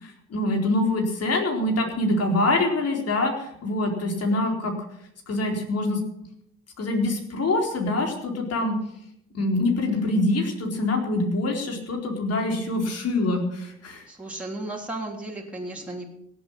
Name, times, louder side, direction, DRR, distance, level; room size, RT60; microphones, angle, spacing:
voice 1, 0.0-4.7 5.3-6.0 6.8-8.8 9.3-14.0, left 2 dB, 55° left, 2 dB, 4.3 m, -25 dB
voice 2, 14.1-16.1, right 2 dB, 5° right, -3 dB, 3.4 m, -34 dB
17.0 x 8.4 x 7.3 m, 0.75 s
cardioid pair, 90°, 30 cm